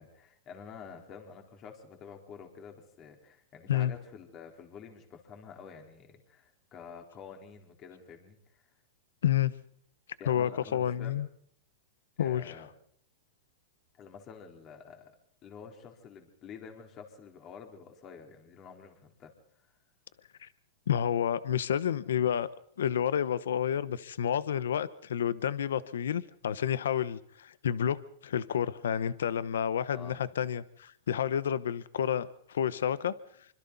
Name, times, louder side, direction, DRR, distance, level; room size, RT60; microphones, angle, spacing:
voice 1, 0.0-8.7 10.2-11.2 12.2-12.7 13.9-15.2 15.4-19.7 29.9-30.3, left 6 dB, 30° left, 4 dB, 4.4 m, -49 dB
voice 2, 9.2-9.5 10.3-11.3 12.2-12.5 20.4-20.5 20.9-22.5 22.8-33.1, left 9 dB, 90° left, 16 dB, 1.0 m, -30 dB
26.0 x 25.5 x 4.1 m, 0.65 s
hypercardioid pair, 140°, 0 cm